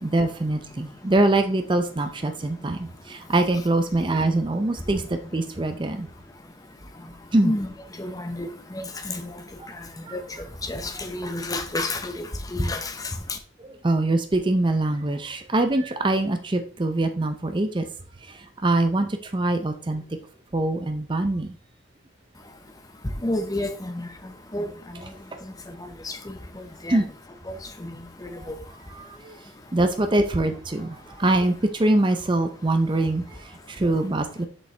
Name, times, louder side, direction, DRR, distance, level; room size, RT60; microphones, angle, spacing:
voice 1, 0.0-6.1 7.3-7.5 10.1-10.2 13.6-17.8 18.2-20.0 20.5-21.5 26.9-27.0 28.4-28.5 29.0-29.4 29.7-34.4, right 2 dB, 25° right, 0.5 m, -24 dB
voice 2, 8.0-8.5 8.7-9.2 10.1-10.2 10.6-12.1 12.5-12.9 23.2-24.1 24.5-24.7 26.0-26.3 26.8-27.0 27.8-27.9 28.2-28.3, left 1 dB, 20° left, 0.7 m, -29 dB
6.4 x 5.2 x 3.3 m
head